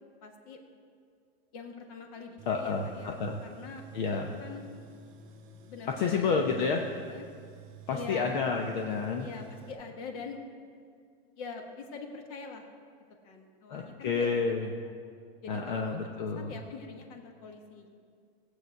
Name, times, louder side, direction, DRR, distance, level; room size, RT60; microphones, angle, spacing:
voice 1, 0.2-0.6 1.5-3.8 4.4-4.7 5.7-6.4 6.8-7.2 7.9-8.5 9.2-10.5 11.4-12.6 13.2-14.3 14.6-14.7 15.4-17.9, left 4 dB, 35° left, 4 dB, 1.4 m, -44 dB
Tools, 2.4-9.7, right 6 dB, 25° right, 1.2 m, -51 dB
voice 2, 2.5-3.4 3.9-4.3 6.0-6.8 7.9-9.3 13.7-14.7 15.5-16.5, left 5 dB, 50° left, 2 dB, 0.9 m, -30 dB
17.5 x 8.2 x 4.6 m, 2.2 s
supercardioid pair, 175°, 30 cm